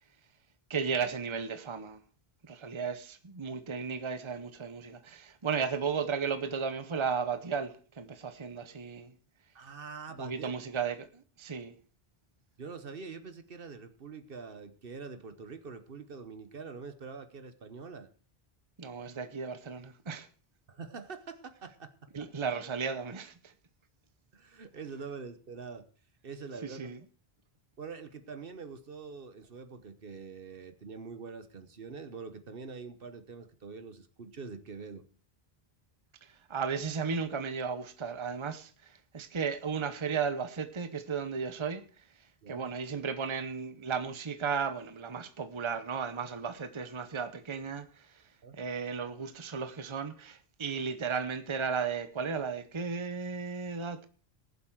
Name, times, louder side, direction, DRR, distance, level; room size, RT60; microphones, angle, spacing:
voice 1, 0.7-2.0 2.4-9.1 10.2-11.7 18.8-20.3 22.1-23.3 26.6-27.0 36.2-41.9 42.5-48.1 48.5-54.1, right 6 dB, 30° right, 0.9 m, -35 dB
voice 2, 9.5-10.5 12.6-18.1 20.7-22.3 24.3-25.9 26.2-26.9 27.8-35.0 42.4-42.7 48.4-48.5, right 5 dB, 60° right, 1.2 m, -44 dB
19.5 x 7.5 x 4.7 m
omnidirectional pair, 1.1 m